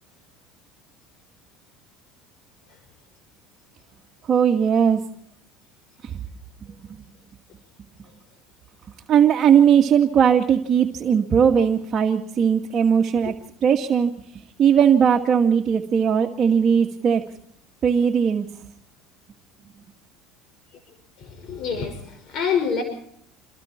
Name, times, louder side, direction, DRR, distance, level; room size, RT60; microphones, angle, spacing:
voice 1, 4.3-5.0 6.0-6.1 9.1-13.3 13.6-14.1 14.6-17.2 17.8-18.5, right 7 dB, 40° right, 3 dB, 2.1 m, -18 dB
voice 2, 21.2-22.8, left 6 dB, 50° left, 5 dB, 5.8 m, -26 dB
28.5 x 21.5 x 4.6 m, 0.68 s
supercardioid pair, 105°, 0 cm